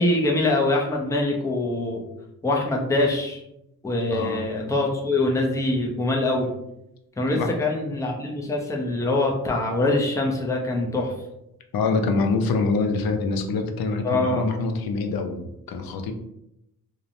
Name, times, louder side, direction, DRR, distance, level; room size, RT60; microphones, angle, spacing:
voice 1, 0.0-2.0 2.4-3.4 3.8-6.5 7.2-11.1 14.0-14.4, left 2 dB, 10° left, -1 dB, 0.4 m, -24 dB
voice 2, 4.1-4.5 7.3-7.5 11.7-16.1, left 3 dB, 75° left, 5 dB, 0.5 m, -25 dB
2.8 x 2.0 x 2.5 m, 0.83 s
wide cardioid pair, 120°, 36 cm